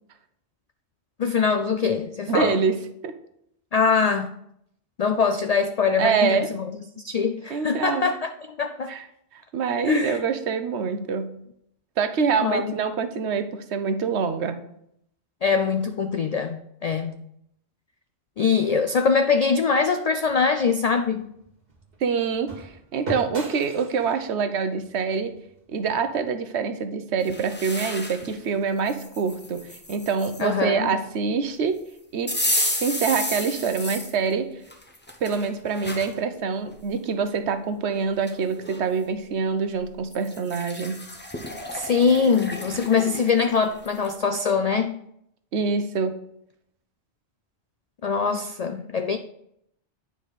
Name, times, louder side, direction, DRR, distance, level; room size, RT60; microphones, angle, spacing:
voice 1, 1.2-2.6 3.7-4.3 5.0-6.7 7.0-9.0 9.9-10.2 12.4-12.7 15.4-17.1 18.4-21.3 30.4-30.9 41.7-45.0 48.0-49.2, left 5 dB, 65° left, 8 dB, 0.3 m, -23 dB
voice 2, 2.3-3.1 6.0-6.5 7.5-8.1 8.9-9.0 9.3-11.3 12.0-14.6 22.0-25.4 25.7-31.8 32.1-32.4 32.8-34.5 35.2-41.0 45.5-46.2, right 5 dB, 70° right, 10 dB, 1.0 m, -25 dB
sound 1, 20.3-26.4, right 1 dB, 55° right, 1.8 m, -41 dB
sound 2, 27.2-28.4 28.9-30.4 32.3-34.2 34.7-36.1 36.7-36.8 37.9-38.0 38.3-38.8 40.1-44.2, left 1 dB, 10° left, 0.8 m, -32 dB
9.0 x 4.9 x 4.0 m, 0.73 s
omnidirectional pair, 1.2 m